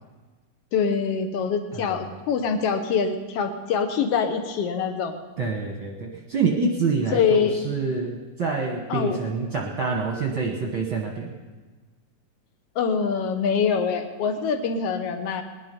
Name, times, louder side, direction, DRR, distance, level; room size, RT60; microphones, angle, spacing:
voice 1, 0.7-5.1 7.1-7.8 8.9-9.2 12.7-15.4, left 6 dB, 70° left, 7 dB, 1.5 m, -24 dB
voice 2, 5.4-11.3, right 4 dB, 55° right, 0 dB, 1.5 m, -27 dB
20.5 x 10.5 x 5.3 m, 1.3 s
omnidirectional pair, 3.9 m